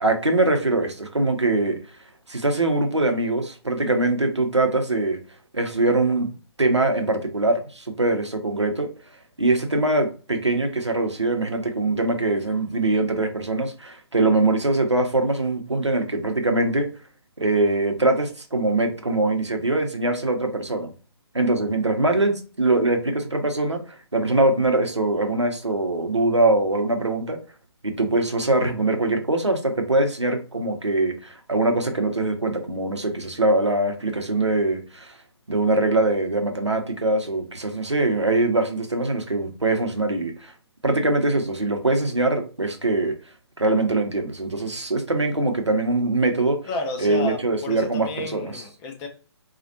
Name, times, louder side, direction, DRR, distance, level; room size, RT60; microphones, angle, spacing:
voice 1, 0.0-1.8 2.3-5.2 5.5-6.3 6.6-8.9 9.4-16.9 17.4-20.9 21.3-27.4 27.8-35.2 35.5-40.5 40.8-43.1 43.6-46.6 47.0-48.5, right 2 dB, 85° right, 5 dB, 0.8 m, -22 dB
voice 2, 46.7-49.1, left 2 dB, 15° left, 2 dB, 0.5 m, -31 dB
4.2 x 2.4 x 2.7 m, 0.36 s
figure-of-eight pair, 135°, 14 cm